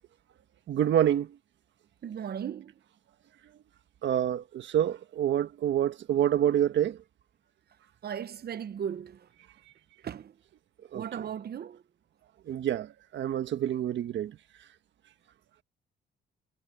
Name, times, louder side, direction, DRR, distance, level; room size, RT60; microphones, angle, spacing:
voice 1, 0.7-1.4 4.0-7.0 10.9-11.0 12.5-14.4, right 10 dB, 70° right, 1.4 m, -27 dB
voice 2, 2.0-2.7 8.0-9.3 10.0-10.4 10.9-11.8, right 8 dB, 50° right, 1.0 m, -37 dB
cardioid pair, 90°, 20 cm